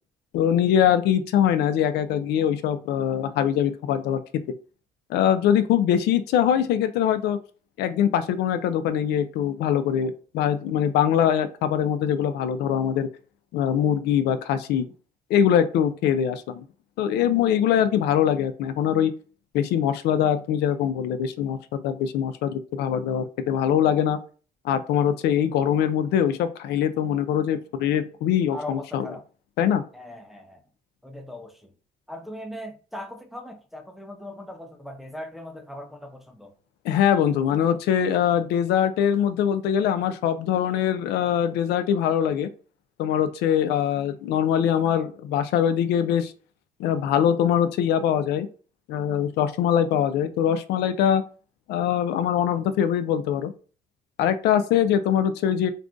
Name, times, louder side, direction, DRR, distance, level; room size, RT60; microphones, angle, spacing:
voice 1, 0.3-4.2 5.1-7.4 7.8-13.1 13.5-14.9 15.3-16.6 17.0-19.1 19.5-21.6 21.8-24.2 24.6-29.1 29.6-29.8 36.8-42.5 43.0-46.3 46.8-48.5 48.9-51.2 51.7-53.5 54.2-55.7, left 9 dB, 75° left, 0.4 m, -23 dB
voice 2, 28.5-29.2 29.9-30.6 31.0-31.5 32.1-36.5, left 1 dB, ahead, 0.5 m, -39 dB
2.4 x 2.3 x 3.7 m
cardioid pair, 110°, 17 cm